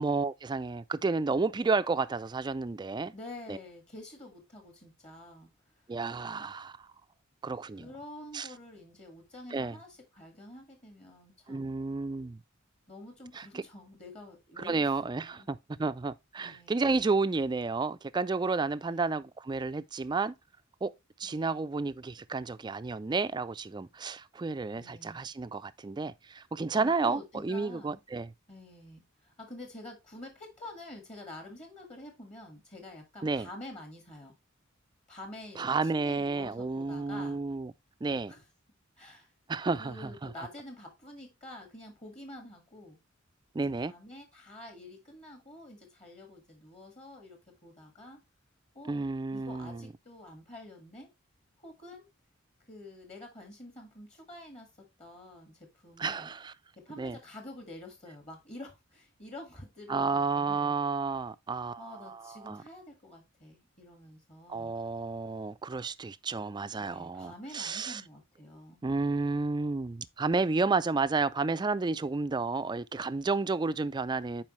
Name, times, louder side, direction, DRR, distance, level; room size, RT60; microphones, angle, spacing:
voice 1, 0.0-3.1 3.5-3.6 5.9-6.8 7.4-7.9 8.3-8.5 9.5-9.8 11.5-12.4 13.3-13.6 14.6-20.3 20.8-20.9 21.2-28.3 33.2-33.5 35.6-37.7 38.0-38.3 39.5-40.5 43.5-43.9 48.9-49.8 56.0-56.5 57.0-57.2 59.9-62.6 64.5-68.0 68.8-74.4, right 4 dB, 20° right, 0.3 m, -31 dB
voice 2, 3.1-5.5 5.7-5.9 7.8-11.7 12.9-14.9 15.2-15.5 16.4-16.8 18.8-19.2 21.2-21.6 24.8-25.3 26.3-26.4 26.7-28.0 28.5-34.4 35.1-37.4 38.3-38.4 39.0-39.3 39.8-43.0 43.6-48.2 48.7-49.0 49.3-51.1 51.6-52.1 52.7-54.7 55.0-56.3 56.8-60.7 61.8-64.7 66.8-68.8, left 1 dB, 30° left, 1.8 m, -48 dB
10.5 x 4.8 x 3.1 m
head